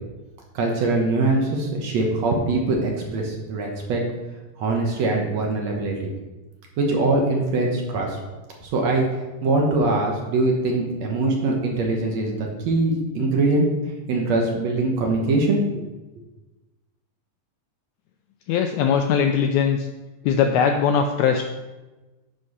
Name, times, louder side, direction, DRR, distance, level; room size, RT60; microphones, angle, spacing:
voice 1, 0.5-4.0 4.6-6.0 6.8-8.2 8.6-9.0 9.4-13.7 14.1-15.6, right 2 dB, 65° right, 0 dB, 2.1 m, -22 dB
voice 2, 18.5-19.8 20.2-21.4, left 7 dB, 80° left, 4 dB, 1.7 m, -20 dB
9.8 x 4.5 x 5.5 m, 1.1 s
omnidirectional pair, 3.8 m